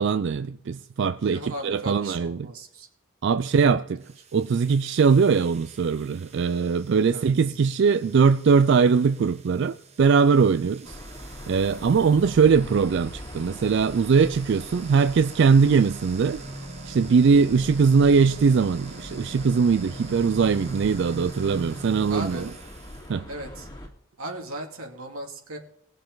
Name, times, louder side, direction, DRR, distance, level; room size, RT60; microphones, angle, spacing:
voice 1, 0.0-2.5 3.2-4.0 4.3-11.0 11.5-16.4 16.9-22.5 23.1-23.2, right 5 dB, 55° right, 0.3 m, -21 dB
voice 2, 1.2-2.9 3.4-3.8 7.1-7.6 22.1-22.5 23.3-23.7 24.2-25.6, right 1 dB, 85° right, 2.4 m, -37 dB
sound 1, 4.0-23.1, right 2 dB, 30° right, 1.0 m, -43 dB
sound 2, 10.8-23.9, left 1 dB, 20° left, 2.1 m, -42 dB
19.5 x 6.6 x 3.9 m
head